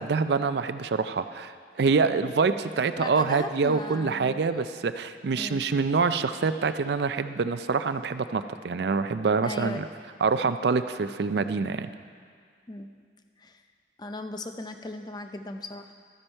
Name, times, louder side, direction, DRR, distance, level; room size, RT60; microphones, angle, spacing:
voice 1, 0.0-1.5 1.8-9.9 10.2-11.9, right 4 dB, 60° right, 11 dB, 0.4 m, -26 dB
voice 2, 3.0-4.4 5.3-5.6 9.4-9.9 12.7-12.9 13.4-13.6 14.0-15.9, left 2 dB, 20° left, 7 dB, 0.5 m, -37 dB
13.0 x 9.8 x 4.4 m, 2.1 s
head